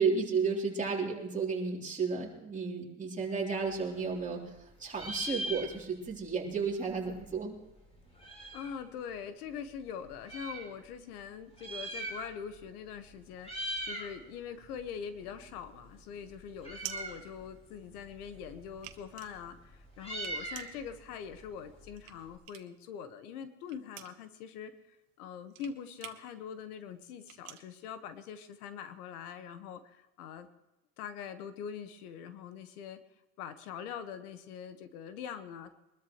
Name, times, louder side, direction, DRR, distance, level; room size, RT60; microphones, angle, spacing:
voice 1, 0.0-7.6, right 5 dB, 15° right, -2 dB, 3.5 m, -33 dB
Meow, 3.6-4.6 4.9-6.1 6.4-6.5 6.7-8.8 9.5-10.7 11.4-12.6 12.9-13.1 13.4-14.1 14.5-22.4, right 1 dB, 15° left, 4.1 m, -42 dB
voice 2, 8.5-30.5 31.0-33.0 33.4-35.7, left 7 dB, 85° left, 10 dB, 1.5 m, -43 dB
sound 1, 15.5-18.1 18.5-22.9 23.2-28.7, right 15 dB, 55° right, 1.3 m, -49 dB
23.5 x 13.0 x 3.1 m, 0.96 s
supercardioid pair, 120°, 44 cm